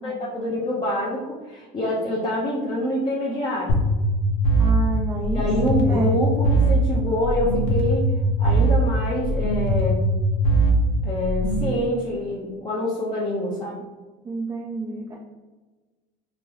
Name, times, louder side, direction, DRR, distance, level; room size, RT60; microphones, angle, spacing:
voice 1, 0.0-3.8 5.3-8.0 8.4-10.0 11.0-13.8, left 1 dB, 25° left, -6 dB, 0.6 m, -26 dB
sound 1, 3.7-11.7, right 1 dB, 75° left, 0.7 m, -21 dB
voice 2, 4.6-6.2 14.2-15.2, right 3 dB, 20° right, -2 dB, 0.4 m, -30 dB
2.8 x 2.2 x 3.1 m, 1.2 s
supercardioid pair, 105°, 19 cm